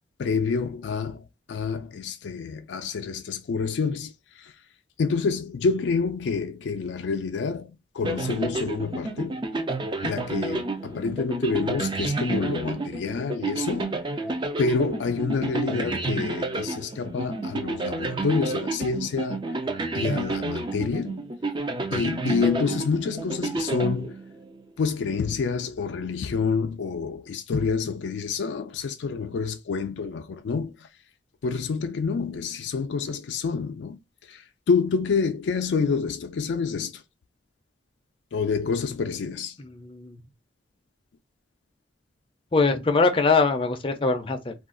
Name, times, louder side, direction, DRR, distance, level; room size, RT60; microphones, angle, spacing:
voice 1, 0.2-1.2 1.5-4.5 5.0-9.4 10.0-14.0 14.6-19.4 19.9-21.3 21.9-24.2 24.8-30.9 31.4-34.0 34.3-37.0 38.3-39.6, left 5 dB, 90° left, 0.4 m, -28 dB
sound 1, 8.0-24.6, right 3 dB, 25° right, 0.4 m, -30 dB
voice 2, 39.6-40.2 42.5-44.5, left 4 dB, 30° left, 0.5 m, -22 dB
2.4 x 2.3 x 3.6 m
head